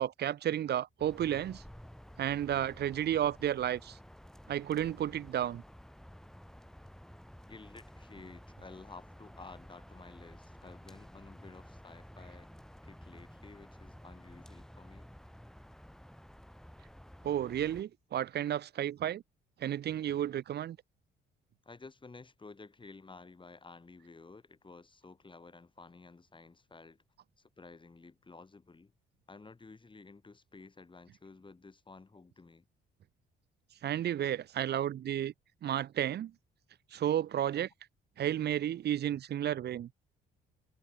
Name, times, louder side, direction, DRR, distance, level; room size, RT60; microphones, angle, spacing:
voice 1, 0.0-1.6 2.2-4.0 4.5-5.6 17.2-19.2 19.6-20.8 33.8-35.3 35.6-36.3 36.9-37.7 38.2-39.9, right 11 dB, 55° right, 0.7 m, -32 dB
sound 1, 1.0-17.8, equal, ahead, 6.0 m, -53 dB
voice 2, 7.5-12.5 12.8-15.1 21.6-27.0 27.4-28.9 29.3-32.7, left 3 dB, 25° left, 6.4 m, -53 dB
cardioid pair, 90°, 20 cm